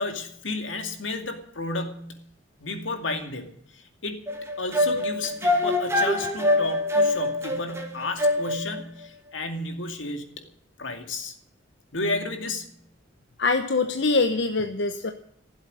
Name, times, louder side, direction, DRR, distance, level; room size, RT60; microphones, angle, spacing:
voice 1, 0.0-2.1 2.6-3.5 3.7-4.2 4.6-10.2 10.8-11.3 11.9-12.7, left 2 dB, 80° left, 6 dB, 2.4 m, -32 dB
sound 1, 4.3-8.8, left 1 dB, 15° right, 2.0 m, -24 dB
voice 2, 13.4-15.1, left 3 dB, 60° left, 6 dB, 1.0 m, -23 dB
15.5 x 8.0 x 9.8 m, 0.68 s
head